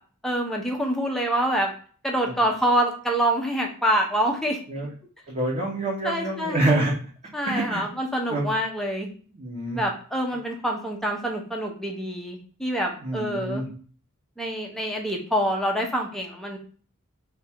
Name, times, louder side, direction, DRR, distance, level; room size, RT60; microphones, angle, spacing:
voice 1, 0.2-1.7 2.0-4.6 6.0-6.8 7.3-9.1 9.8-13.6 14.4-16.6, right 1 dB, ahead, 0 dB, 0.7 m, -26 dB
voice 2, 5.3-6.9 7.4-7.8 8.3-8.5 9.3-9.8 13.0-13.7, right 1 dB, 35° right, -6 dB, 1.0 m, -26 dB
3.5 x 2.7 x 4.2 m, 0.42 s
head